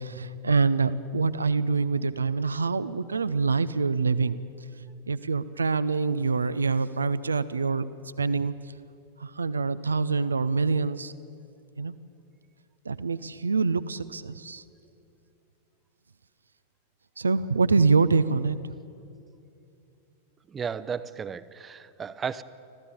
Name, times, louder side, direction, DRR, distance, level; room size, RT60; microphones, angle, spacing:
voice 1, 0.0-4.4 5.1-7.9 8.2-8.5 9.2-11.1 11.8-11.9 12.9-14.6 17.2-18.7, right 4 dB, 75° right, 15 dB, 0.5 m, -25 dB
voice 2, 20.5-22.4, right 6 dB, 20° right, 15 dB, 0.7 m, -34 dB
26.0 x 15.5 x 8.5 m, 2.6 s
figure-of-eight pair, 90°, 0 cm